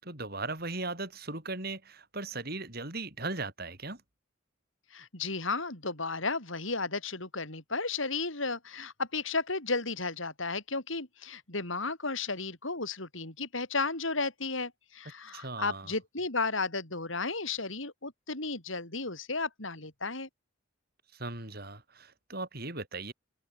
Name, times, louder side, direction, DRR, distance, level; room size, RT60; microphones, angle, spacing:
voice 1, 0.0-4.0 15.3-15.9 21.1-23.1, right 3 dB, 50° right, 7.0 m, -38 dB
voice 2, 4.9-20.3, left 3 dB, 75° left, 5.7 m, -34 dB
open air
head